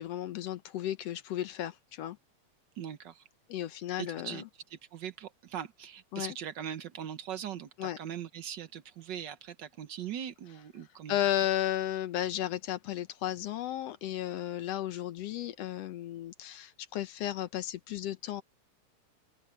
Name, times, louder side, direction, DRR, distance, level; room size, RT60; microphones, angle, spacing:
voice 1, 0.0-2.2 3.5-4.4 6.1-6.3 7.8-8.0 11.1-18.4, left 12 dB, 70° left, 1.7 m, -34 dB
voice 2, 2.8-3.2 4.0-4.4 4.7-11.2, right 9 dB, 85° right, 0.9 m, -40 dB
open air
omnidirectional pair, 3.4 m